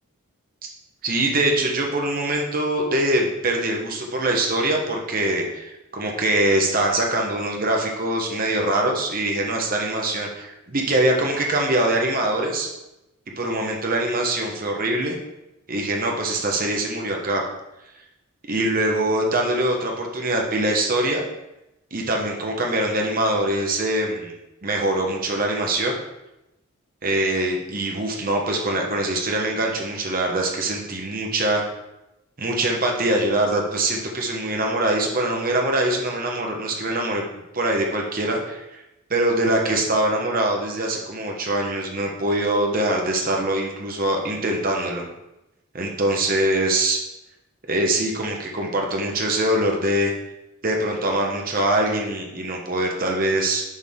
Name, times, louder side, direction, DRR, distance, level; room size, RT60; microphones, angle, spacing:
voice 1, 1.0-12.7 13.4-15.2 15.7-17.4 18.5-21.2 21.9-24.3 24.6-26.0 27.0-31.6 32.4-37.2 37.5-38.8 39.1-45.0 45.7-47.0 47.7-50.1 50.6-53.6, right 1 dB, 40° right, 0 dB, 1.1 m, -23 dB
6.4 x 5.7 x 3.6 m, 0.91 s
head